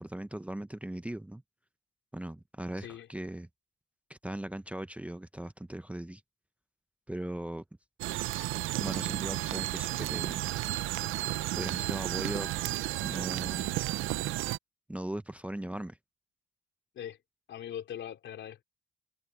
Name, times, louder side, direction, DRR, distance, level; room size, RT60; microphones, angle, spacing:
voice 1, 0.0-1.4 2.1-3.5 4.1-6.2 7.1-7.6 8.8-10.4 11.6-12.5 13.0-13.8 14.9-16.0, right 1 dB, 5° right, 0.7 m, -38 dB
sound 1, 8.0-14.6, right 16 dB, 90° right, 0.6 m, -33 dB
voice 2, 17.5-18.6, left 10 dB, 70° left, 3.4 m, -41 dB
cardioid pair, 90°, 20 cm